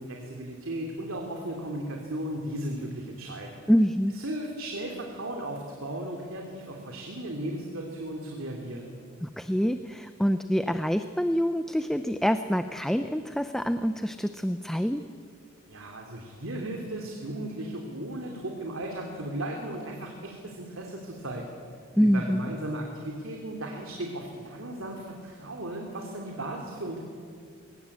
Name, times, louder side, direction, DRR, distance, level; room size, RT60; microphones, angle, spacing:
voice 1, 0.0-3.6 4.1-8.9 15.7-21.5 22.0-27.0, right 1 dB, 80° right, 2 dB, 2.6 m, -36 dB
voice 2, 3.7-4.2 9.2-15.0 22.0-22.4, equal, ahead, 9 dB, 0.5 m, -26 dB
22.0 x 18.5 x 8.4 m, 2.2 s
head